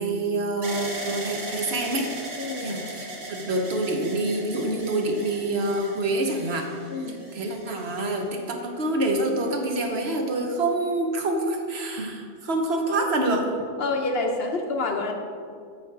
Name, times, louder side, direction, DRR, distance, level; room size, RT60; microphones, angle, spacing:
voice 1, 0.0-2.1 2.6-6.7 7.1-13.6, right 2 dB, 55° right, 3 dB, 1.1 m, -26 dB
sound 1, 0.6-8.6 9.3-10.0, right 1 dB, 70° right, 1.9 m, -38 dB
voice 2, 2.4-2.8 6.9-7.2 13.8-15.1, left 3 dB, 55° left, 3 dB, 0.8 m, -27 dB
8.4 x 6.7 x 4.6 m, 2.2 s
omnidirectional pair, 1.3 m